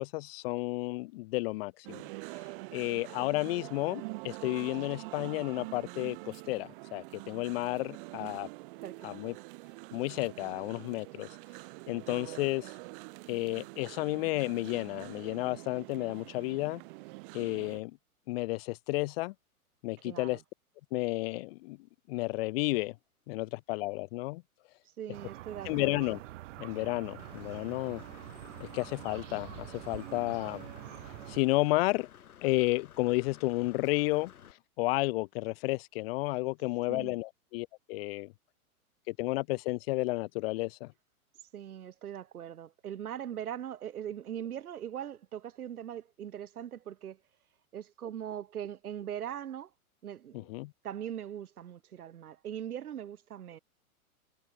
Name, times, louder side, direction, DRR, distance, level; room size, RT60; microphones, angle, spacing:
voice 1, 0.0-2.0 2.7-8.5 9.0-9.3 9.9-11.3 11.9-12.7 13.3-16.8 17.3-17.9 18.3-19.3 19.8-20.4 20.9-21.8 22.1-22.9 23.3-24.4 25.6-26.2 26.6-28.0 28.6-30.6 31.3-32.1 32.4-34.3 34.8-38.3 39.1-40.9 50.3-50.7, left 22 dB, 40° left, 1.2 m, -32 dB
sound 1, 1.8-17.8, right 26 dB, 35° right, 1.0 m, -45 dB
voice 2, 8.8-9.2 12.1-12.5 20.0-20.4 25.0-26.0 36.9-37.2 41.5-47.2 47.7-49.7 50.0-50.5 50.8-53.6, right 10 dB, 75° right, 1.6 m, -41 dB
sound 2, 25.1-31.4, right 16 dB, 55° right, 4.9 m, -46 dB
Engine / Mechanisms, 27.2-34.5, left 9 dB, 75° left, 2.9 m, -54 dB
hypercardioid pair, 125°, 44 cm